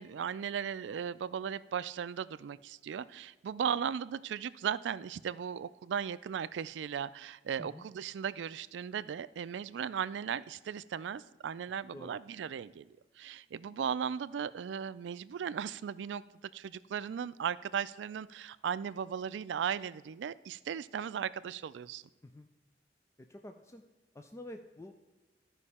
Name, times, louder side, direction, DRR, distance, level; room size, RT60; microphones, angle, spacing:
voice 1, 0.0-12.9 13.2-16.2 16.5-22.0, right 8 dB, 85° right, 16 dB, 0.3 m, -37 dB
voice 2, 23.3-23.8 24.1-24.9, left 1 dB, 15° left, 5 dB, 0.4 m, -48 dB
13.5 x 5.4 x 4.2 m, 1.2 s
head